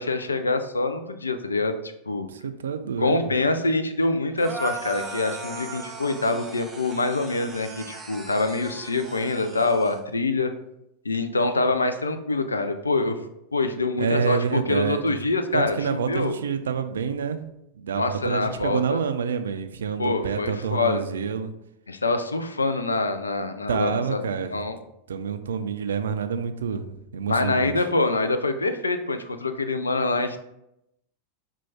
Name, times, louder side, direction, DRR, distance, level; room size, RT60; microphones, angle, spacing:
voice 1, 0.0-1.8 2.1-2.3 3.0-10.5 11.0-13.2 13.5-16.4 17.9-19.0 20.0-21.0 21.9-24.2 24.5-24.8 27.3-30.4, left 3 dB, 75° left, 8 dB, 0.3 m, -25 dB
voice 2, 2.3-3.3 14.0-15.2 15.5-17.4 17.7-21.5 23.7-24.5 25.1-27.7, right 6 dB, 65° right, 9 dB, 0.3 m, -28 dB
sound 1, 4.4-10.0, right 2 dB, 15° right, 0.6 m, -38 dB
4.4 x 2.2 x 4.3 m, 0.83 s
figure-of-eight pair, 90°, 0 cm